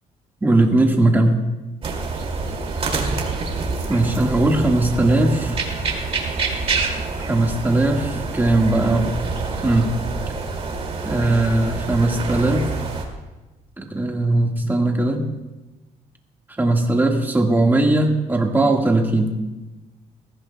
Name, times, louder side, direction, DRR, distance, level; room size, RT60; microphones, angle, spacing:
voice 1, 0.4-1.4 3.9-5.6 7.3-9.1 9.6-10.0 11.0-12.7 13.8-15.2 16.6-19.4, right 2 dB, 15° right, 2 dB, 1.6 m, -19 dB
sound 1, 1.8-13.0, right 4 dB, 45° right, 2.4 m, -27 dB
20.0 x 15.0 x 2.3 m, 1.1 s
cardioid pair, 120°, 14 cm